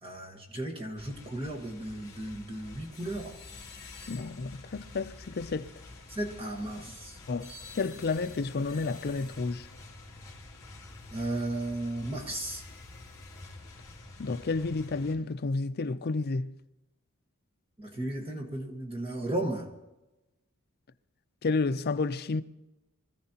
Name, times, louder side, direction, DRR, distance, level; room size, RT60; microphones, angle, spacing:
voice 1, 0.0-3.4 6.1-7.2 11.1-12.6 17.8-19.7, right 1 dB, 25° right, 1.4 m, -35 dB
sound 1, 1.0-15.2, left 2 dB, 15° left, 3.0 m, -48 dB
voice 2, 4.1-5.7 7.3-9.7 14.2-16.5 21.4-22.4, left 3 dB, 45° left, 0.5 m, -31 dB
24.5 x 15.0 x 2.9 m
head